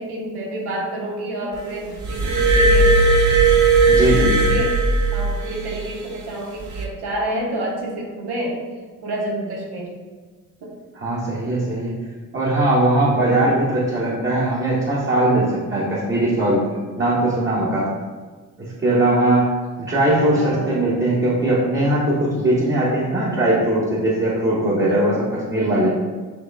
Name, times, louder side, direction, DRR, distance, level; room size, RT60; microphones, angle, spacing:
voice 1, 0.0-2.9 4.5-8.6 9.0-9.9 10.6-10.7 20.3-20.7, right 1 dB, 70° right, -2 dB, 1.1 m, -28 dB
Glass, 2.0-5.6 6.6-6.8, right 3 dB, 45° right, 0.7 m, -16 dB
voice 2, 3.9-4.4 10.9-11.9 12.3-16.6 17.0-17.9 18.6-25.9, right 1 dB, 30° right, -8 dB, 1.2 m, -20 dB
5.0 x 3.0 x 2.3 m, 1.4 s
hypercardioid pair, 50°, 41 cm